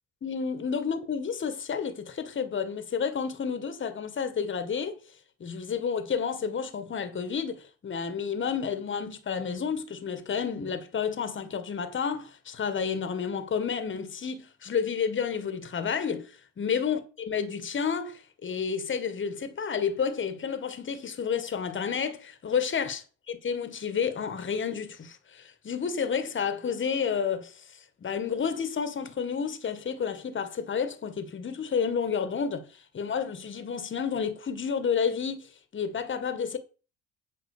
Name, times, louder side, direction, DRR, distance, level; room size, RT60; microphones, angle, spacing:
voice 1, 0.2-5.0 5.4-23.0 23.3-36.6, left 6 dB, 40° left, 1.9 m, -30 dB
8.6 x 5.4 x 6.8 m
supercardioid pair, 90°, 31 cm